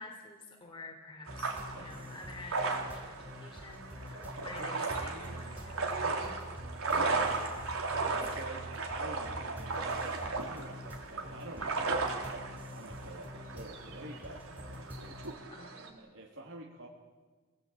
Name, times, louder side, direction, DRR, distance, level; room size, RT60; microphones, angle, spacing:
voice 1, 0.0-5.9 6.1-6.3 8.0-8.2 8.5-8.6 11.6-11.8 15.5-16.1, left 3 dB, 25° left, 0 dB, 3.7 m, -50 dB
sound 1, 1.3-15.3, equal, 10° right, 4.5 m, -46 dB
sound 2, 1.3-15.9, right 3 dB, 90° right, 3.7 m, -36 dB
voice 2, 4.2-7.6 8.2-10.8 11.1-12.1 12.5-15.2 16.0-16.9, right 1 dB, 65° right, -1 dB, 3.3 m, -48 dB
26.0 x 18.0 x 8.7 m, 1.3 s
head